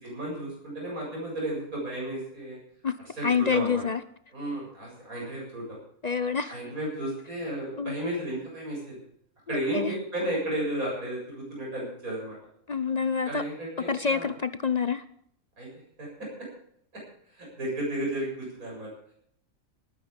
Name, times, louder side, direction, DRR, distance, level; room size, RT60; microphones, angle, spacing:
voice 1, 0.0-2.6 3.2-3.8 4.3-5.6 6.5-9.0 9.5-12.4 13.3-14.3 15.6-15.7 16.0-16.1 17.4-18.9, right 1 dB, 80° right, -3 dB, 7.9 m, -33 dB
voice 2, 3.2-4.0 6.0-6.6 7.8-7.9 9.5-10.0 12.7-13.4 13.9-15.0, left 6 dB, 45° left, 13 dB, 0.5 m, -27 dB
19.5 x 9.9 x 5.1 m, 0.66 s
omnidirectional pair, 1.5 m